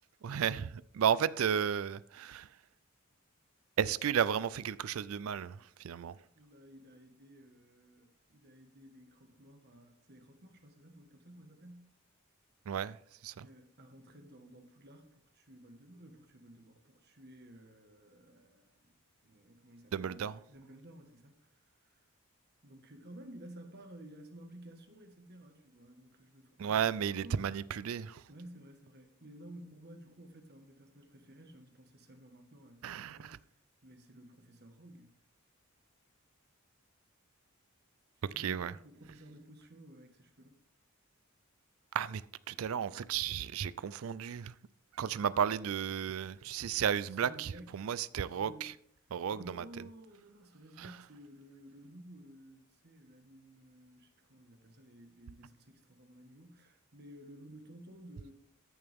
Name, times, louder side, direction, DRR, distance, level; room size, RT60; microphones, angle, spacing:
voice 1, 0.2-2.6 3.8-6.2 12.7-13.0 13.2-13.5 19.9-20.4 26.6-28.3 32.8-33.4 38.2-38.7 41.9-42.2 42.5-44.5 44.9-48.7 49.1-49.6 50.8-51.0, right 8 dB, 70° right, 0.4 m, -33 dB
voice 2, 6.3-11.9 13.4-22.0 22.6-26.9 27.2-27.6 28.3-33.3 33.8-35.1 38.3-40.6 47.2-47.9 48.4-48.7 49.3-58.3, right 1 dB, 50° right, 1.5 m, -54 dB
14.0 x 6.9 x 3.6 m
head